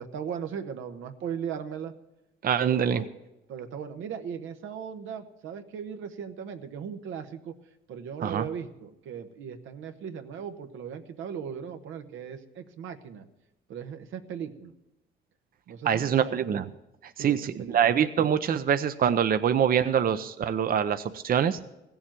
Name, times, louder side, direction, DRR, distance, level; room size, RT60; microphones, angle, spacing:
voice 1, 0.0-1.9 2.6-3.1 3.5-7.5 7.9-13.2 13.7-14.7 15.7-16.4 17.2-17.8, right 7 dB, 85° right, 6 dB, 1.1 m, -38 dB
voice 2, 2.4-3.0 8.2-8.4 15.9-16.6 17.2-21.6, right 8 dB, 45° right, 10 dB, 0.6 m, -24 dB
16.0 x 7.1 x 8.9 m, 0.94 s
cardioid pair, 90°, 20 cm